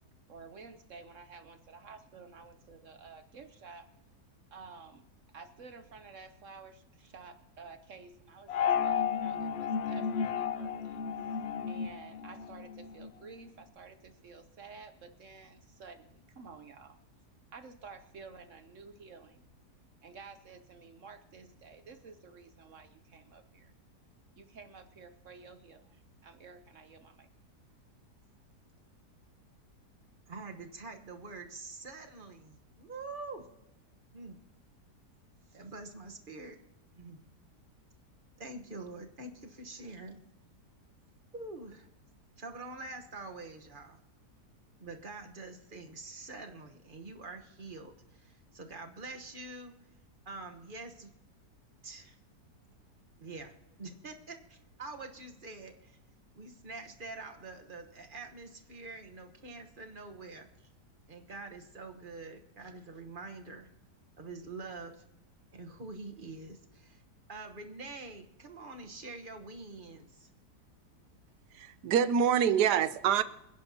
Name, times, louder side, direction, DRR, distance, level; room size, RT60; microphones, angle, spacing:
voice 1, 0.3-3.9 4.5-5.0 5.3-17.0 17.5-19.4 20.0-23.7 24.3-27.3, right 5 dB, 55° right, 9 dB, 1.0 m, -52 dB
sound 1, 8.5-13.1, left 7 dB, 90° left, 0.5 m, -33 dB
voice 2, 30.3-33.5 34.1-34.4 35.5-36.6 37.0-37.2 38.4-40.2 41.3-41.9 42.4-44.0 44.8-49.7 50.3-51.1 51.8-52.2 53.2-53.5 53.8-56.0 56.3-60.5 61.1-63.7 64.2-65.0 65.5-67.0 67.3-70.3, right 3 dB, 35° right, 5 dB, 1.2 m, -45 dB
voice 3, 71.5-73.2, right 8 dB, 80° right, 14 dB, 1.3 m, -26 dB
26.0 x 10.5 x 2.8 m, 0.91 s
omnidirectional pair, 1.8 m